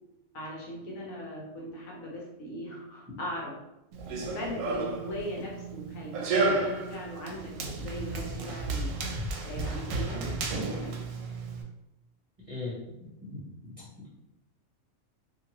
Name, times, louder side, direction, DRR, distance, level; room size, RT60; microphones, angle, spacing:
voice 1, 0.3-3.6 4.2-8.9 9.4-11.0, left 1 dB, 70° left, -2 dB, 1.1 m, -39 dB
Run, 3.9-11.6, right 3 dB, 75° right, 0.9 m, -32 dB
voice 2, 13.6-14.1, left 3 dB, 30° right, -7 dB, 0.7 m, -38 dB
2.9 x 2.5 x 2.8 m, 0.93 s
omnidirectional pair, 1.5 m